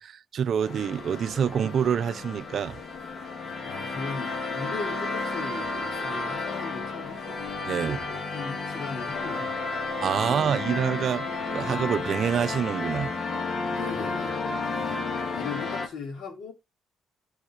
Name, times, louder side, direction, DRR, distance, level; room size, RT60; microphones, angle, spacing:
voice 1, 0.0-2.8 7.6-8.0 10.0-11.3 11.5-13.1, right 8 dB, 60° right, 0.5 m, -26 dB
sound 1, 0.6-15.9, left 3 dB, 50° left, 2.4 m, -32 dB
voice 2, 3.6-7.2 7.7-9.5 10.2-10.5 13.7-14.4 14.8-16.5, left 4 dB, 70° left, 3.5 m, -38 dB
10.5 x 5.2 x 4.8 m
cardioid pair, 90°, 0 cm